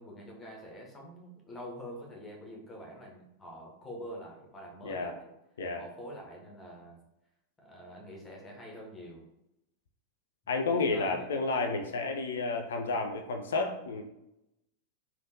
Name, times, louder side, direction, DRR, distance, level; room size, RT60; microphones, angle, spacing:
voice 1, 0.0-5.3 5.8-7.0 7.6-9.3 10.9-11.3, equal, 15° left, -1 dB, 0.8 m, -46 dB
voice 2, 4.8-5.1 5.6-5.8 10.5-14.0, left 3 dB, 65° left, 4 dB, 0.3 m, -31 dB
3.4 x 2.2 x 2.7 m, 0.88 s
figure-of-eight pair, 90°, 0 cm